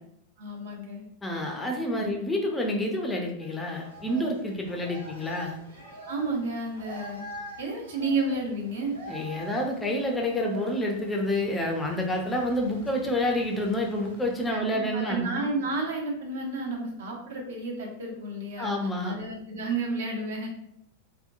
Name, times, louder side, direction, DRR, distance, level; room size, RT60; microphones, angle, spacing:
voice 1, 0.4-1.1 2.0-2.1 6.1-7.2 7.6-8.9 14.5-18.7 19.0-20.5, right 3 dB, 60° right, 0 dB, 0.6 m, -31 dB
voice 2, 1.2-5.6 9.1-15.3 18.6-19.2, left 1 dB, 10° left, 1 dB, 0.4 m, -28 dB
sound 1, 3.4-14.6, right 1 dB, 85° right, 0.8 m, -45 dB
2.7 x 2.1 x 2.5 m, 0.76 s
figure-of-eight pair, 90°, 0 cm